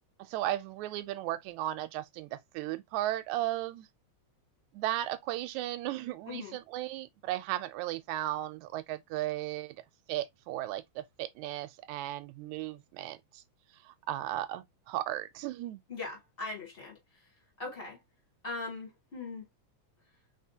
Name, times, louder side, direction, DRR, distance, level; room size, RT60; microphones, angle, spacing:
voice 1, 0.2-3.9 4.7-9.8 10.1-13.4 13.9-15.8, right 14 dB, 85° right, 2.0 m, -35 dB
voice 2, 6.3-6.6 15.9-17.0 17.6-18.0 18.4-19.5, left 3 dB, 20° left, 2.0 m, -40 dB
4.0 x 4.0 x 2.8 m
omnidirectional pair, 3.3 m